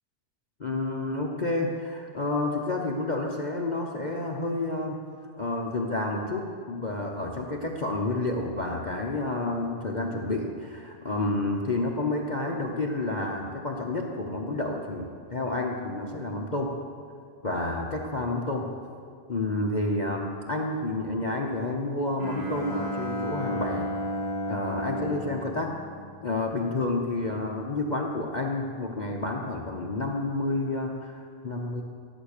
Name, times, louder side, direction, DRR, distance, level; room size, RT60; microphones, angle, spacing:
voice 1, 0.6-5.0 5.4-16.7 17.4-18.7 19.3-23.9 24.5-25.7 26.2-31.8, left 2 dB, 35° left, 1 dB, 0.9 m, -30 dB
Bowed string instrument, 22.2-26.5, equal, 65° right, 2.2 m, -33 dB
14.0 x 11.5 x 6.6 m, 2.3 s
omnidirectional pair, 1.6 m